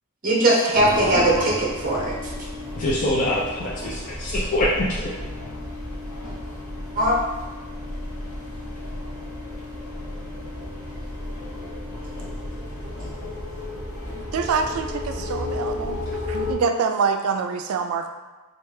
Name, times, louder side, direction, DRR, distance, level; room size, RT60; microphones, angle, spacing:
voice 1, 0.2-2.1 7.0-7.2, right 1 dB, 40° right, -4 dB, 0.8 m, -19 dB
sound 1, 0.7-16.5, left 1 dB, 90° left, 0.9 m, -32 dB
voice 2, 2.8-5.1, left 1 dB, 40° left, -6 dB, 0.4 m, -24 dB
voice 3, 14.1-16.0 16.3-18.1, right 5 dB, 85° right, 7 dB, 0.3 m, -25 dB
3.3 x 2.4 x 3.2 m, 1.2 s
head